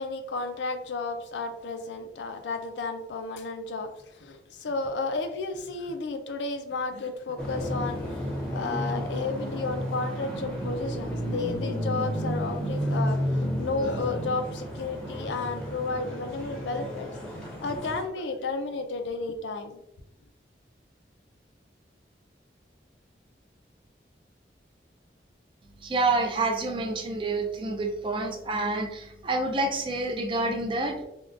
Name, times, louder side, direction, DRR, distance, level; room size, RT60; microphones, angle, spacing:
voice 1, 0.0-8.2 8.5-19.8, left 3 dB, 90° left, 6 dB, 0.4 m, -32 dB
sound 1, 7.4-18.0, equal, 5° left, 0.6 m, -32 dB
voice 2, 25.8-31.0, right 2 dB, 30° right, 3 dB, 0.4 m, -28 dB
3.6 x 2.2 x 2.4 m, 0.86 s
head